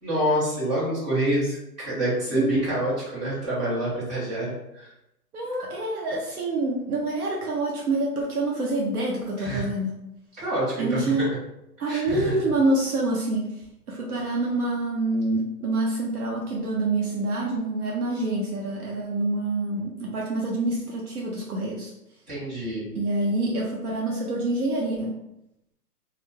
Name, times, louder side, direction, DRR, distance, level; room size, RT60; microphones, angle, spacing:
voice 1, 0.0-4.9 9.4-9.7 10.4-11.3 11.9-12.3 22.3-22.9, right 1 dB, 25° right, -11 dB, 1.1 m, -27 dB
voice 2, 2.3-2.6 5.3-10.0 10.8-11.2 11.8-13.6 13.9-21.9 22.9-25.1, right 2 dB, 65° right, -3 dB, 0.7 m, -26 dB
2.3 x 2.1 x 3.2 m, 0.86 s
hypercardioid pair, 180°, 48 cm